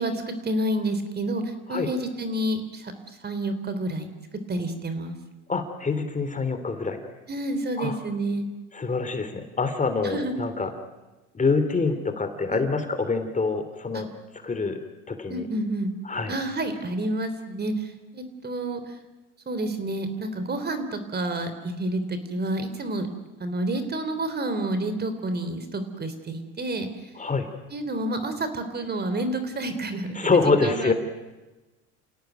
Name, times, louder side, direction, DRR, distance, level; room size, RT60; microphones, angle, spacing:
voice 1, 0.0-2.9 3.2-4.1 4.5-5.2 7.3-8.5 10.0-10.4 12.5-12.6 13.9-14.0 15.3-15.9 16.3-19.0 19.5-23.1 23.4-26.9 27.7-30.9, right 1 dB, 25° right, 10 dB, 3.7 m, -29 dB
voice 2, 5.5-7.0 7.8-8.0 8.7-10.7 11.3-14.1 14.4-14.8 15.1-15.5 16.0-16.3 27.1-27.5 30.1-30.9, left 4 dB, 20° left, 8 dB, 3.2 m, -25 dB
29.0 x 17.0 x 9.3 m, 1.1 s
hypercardioid pair, 85°, 36 cm